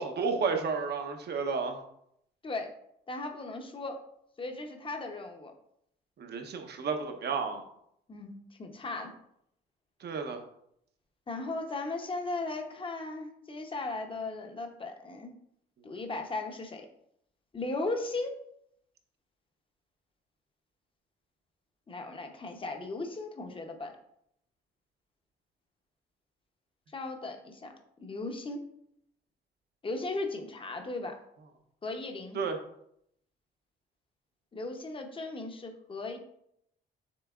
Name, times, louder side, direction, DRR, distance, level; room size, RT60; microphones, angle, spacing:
voice 1, 0.0-1.8 6.2-7.6 10.0-10.4 15.9-16.0 32.3-32.6, right 5 dB, 55° right, 5 dB, 0.8 m, -32 dB
voice 2, 3.1-4.0 4.4-5.5 8.1-9.2 11.3-15.3 15.8-16.9 17.5-18.3 21.9-23.9 26.9-27.7 28.0-28.6 29.8-31.2 31.8-32.4 34.5-36.2, left 2 dB, 25° left, 4 dB, 0.8 m, -37 dB
6.8 x 3.3 x 2.4 m, 0.73 s
cardioid pair, 90°, 20 cm